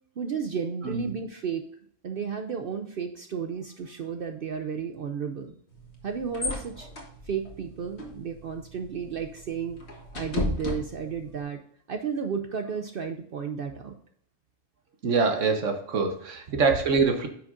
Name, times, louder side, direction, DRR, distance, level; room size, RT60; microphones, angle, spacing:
voice 1, 0.2-1.7 2.0-5.5 6.0-6.9 7.2-9.8 10.1-11.6 11.9-14.0, right 6 dB, 55° right, 6 dB, 0.7 m, -33 dB
sound 1, 5.7-11.4, left 2 dB, 60° left, 1.9 m, -36 dB
voice 2, 15.0-17.3, right 4 dB, 80° right, 5 dB, 1.4 m, -24 dB
9.6 x 6.2 x 2.5 m, 0.65 s
omnidirectional pair, 1.3 m